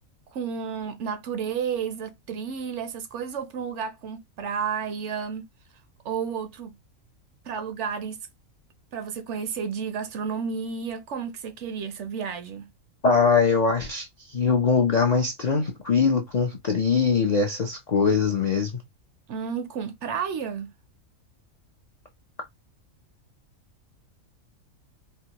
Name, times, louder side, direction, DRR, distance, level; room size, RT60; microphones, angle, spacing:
voice 1, 0.3-5.5 6.0-6.8 7.4-8.2 8.9-12.7 19.3-20.7, right 6 dB, 65° right, 0.8 m, -31 dB
voice 2, 13.0-18.8, left 5 dB, 55° left, 0.4 m, -22 dB
4.4 x 2.1 x 2.8 m
omnidirectional pair, 1.4 m